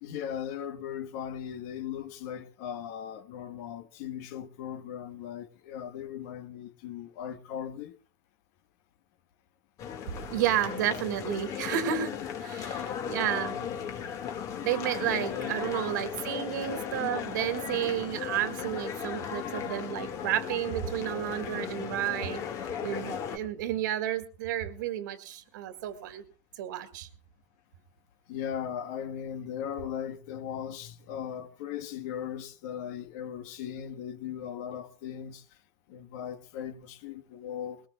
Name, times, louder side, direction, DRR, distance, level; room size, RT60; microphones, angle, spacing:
voice 1, 0.0-7.9 13.5-14.0 15.0-16.1 28.3-35.4 35.9-37.8, left 9 dB, 60° left, 1.4 m, -38 dB
sound 1, 9.8-23.4, left 8 dB, 35° left, 1.9 m, -36 dB
voice 2, 10.3-12.1 12.4-13.6 14.6-22.4 22.8-26.2 26.6-27.1, right 11 dB, 75° right, 1.9 m, -31 dB
21.0 x 19.0 x 2.3 m
supercardioid pair, 150°, 10 cm